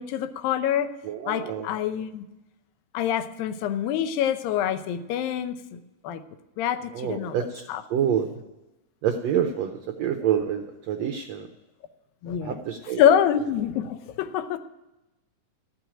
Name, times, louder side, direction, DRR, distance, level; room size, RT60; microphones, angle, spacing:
voice 1, 0.0-0.9 1.3-2.3 2.9-6.2 6.6-7.8 10.2-10.3 12.2-14.6, left 9 dB, 85° left, 11 dB, 2.5 m, -26 dB
voice 2, 1.1-1.6 7.0-7.4 7.9-8.3 9.0-11.4 12.4-13.0, right 9 dB, 90° right, 5 dB, 1.5 m, -27 dB
14.0 x 6.2 x 10.0 m, 1.0 s
omnidirectional pair, 4.0 m